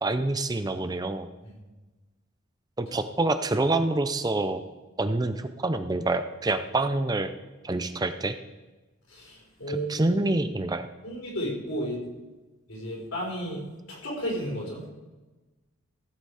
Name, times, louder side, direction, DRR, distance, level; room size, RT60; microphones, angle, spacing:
voice 1, 0.0-1.3 2.8-4.6 5.0-7.3 7.6-8.3 9.7-10.9, right 2 dB, 20° right, 10 dB, 0.5 m, -27 dB
voice 2, 9.1-10.2 11.0-12.0 12.7-14.9, equal, 65° left, -2 dB, 4.9 m, -33 dB
15.0 x 8.0 x 4.9 m, 1.2 s
head